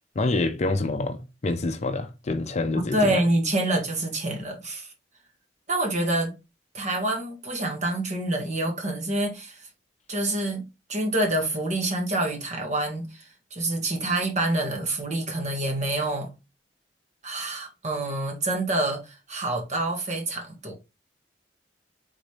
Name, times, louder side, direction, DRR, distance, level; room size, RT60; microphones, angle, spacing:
voice 1, 0.2-3.2, left 2 dB, 40° left, 0.5 m, -27 dB
voice 2, 2.7-4.9 5.7-6.3 6.7-9.7 10.1-10.6 10.9-16.3 17.2-20.7, right 1 dB, 40° right, 1.5 m, -27 dB
4.0 x 3.9 x 3.3 m
head